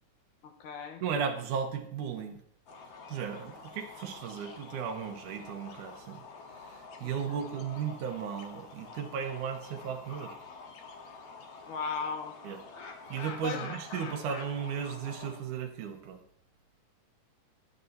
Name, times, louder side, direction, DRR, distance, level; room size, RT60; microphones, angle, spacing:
voice 1, 0.4-1.0 7.3-7.5 11.7-12.4 13.4-13.7, left 5 dB, 80° left, 5 dB, 2.6 m, -36 dB
voice 2, 1.0-2.4 3.1-6.2 6.5-10.4 12.4-12.6 13.1-16.2, right 7 dB, 75° right, 5 dB, 2.5 m, -35 dB
sound 1, 2.7-15.4, left 4 dB, 60° left, 2.1 m, -47 dB
20.5 x 8.2 x 2.8 m, 0.68 s
omnidirectional pair, 3.7 m